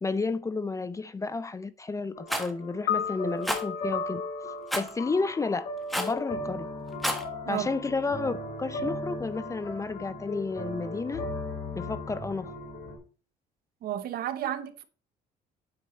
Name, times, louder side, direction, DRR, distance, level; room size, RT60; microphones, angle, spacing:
voice 1, 0.0-4.2 4.7-5.7 6.0-6.7 7.5-11.2 11.8-12.5, left 3 dB, 20° left, 0.4 m, -31 dB
sound 1, 2.1-13.0, left 1 dB, 55° left, 3.3 m, -37 dB
Rattle, 2.3-2.5 3.4-3.6 4.7-4.9 5.9-6.2 6.9-7.2, equal, ahead, 1.2 m, -29 dB
sound 2, 2.9-9.3, left 10 dB, 75° left, 0.6 m, -38 dB
voice 2, 13.8-14.8, right 11 dB, 65° right, 0.9 m, -32 dB
8.6 x 4.6 x 4.1 m
cardioid pair, 110°, 17 cm